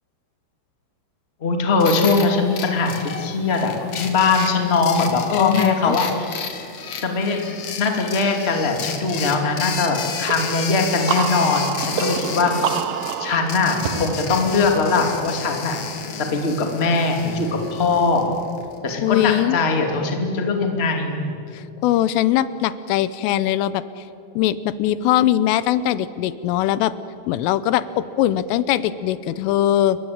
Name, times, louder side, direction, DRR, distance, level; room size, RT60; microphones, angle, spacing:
voice 1, 1.4-6.3 7.0-7.4 7.8-12.5 13.2-15.8 16.2-18.3 18.8-21.3, left 4 dB, 20° left, 3 dB, 1.9 m, -21 dB
sound 1, 1.8-18.8, left 6 dB, 50° left, 2.2 m, -32 dB
voice 2, 5.3-6.0 19.0-19.6 21.5-23.8 24.4-26.9 27.3-30.0, left 12 dB, 85° left, 15 dB, 3.3 m, -21 dB
sound 2, 10.3-15.8, right 9 dB, 90° right, 2.0 m, -28 dB
28.5 x 22.5 x 8.8 m, 2.7 s
omnidirectional pair, 5.7 m